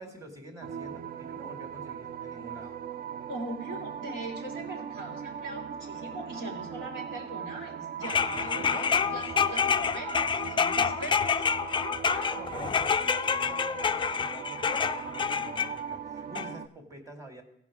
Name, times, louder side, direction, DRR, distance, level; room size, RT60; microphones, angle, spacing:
voice 1, 0.0-2.8 8.3-9.0 12.1-17.4, right 1 dB, 15° right, 3 dB, 1.9 m, -47 dB
sound 1, 0.6-16.7, right 8 dB, 50° right, 0.4 m, -39 dB
voice 2, 3.3-11.4, right 1 dB, 80° right, -1 dB, 2.9 m, -41 dB
sound 2, 8.0-15.7 16.4-16.5, left 6 dB, 25° left, 0.3 m, -28 dB
15.5 x 5.2 x 4.8 m, 0.74 s
cardioid pair, 90°, 20 cm